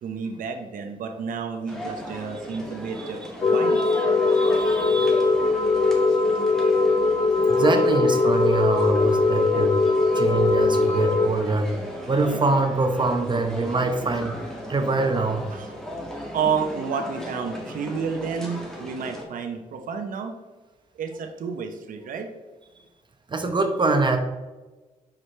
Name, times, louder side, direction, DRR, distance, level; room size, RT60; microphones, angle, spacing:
voice 1, 0.0-3.9 7.3-7.7 12.0-12.1 15.5-15.7 16.3-20.3 20.9-22.3, right 6 dB, 75° right, 5 dB, 0.8 m, -31 dB
sound 1, 1.7-19.2, equal, 5° left, 1.7 m, -36 dB
voice 2, 3.0-3.3 3.7-5.3 7.5-9.8 10.1-11.7 12.1-15.5 23.3-24.2, right 3 dB, 35° right, 5 dB, 1.0 m, -24 dB
sound 2, 3.4-11.3, left 3 dB, 40° left, 0.4 m, -20 dB
6.0 x 4.9 x 3.2 m, 1.2 s
cardioid pair, 75°, 14 cm